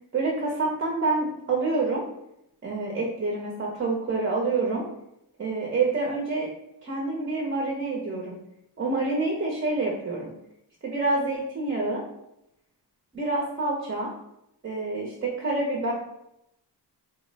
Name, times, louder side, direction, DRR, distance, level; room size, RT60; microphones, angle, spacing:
voice 1, 0.1-2.0 2.6-4.9 5.4-6.5 6.8-8.4 8.8-10.3 10.8-12.0 13.1-14.1 14.6-15.9, right 3 dB, 25° right, -2 dB, 0.6 m, -27 dB
3.9 x 2.0 x 3.8 m, 0.81 s
wide cardioid pair, 165°, 44 cm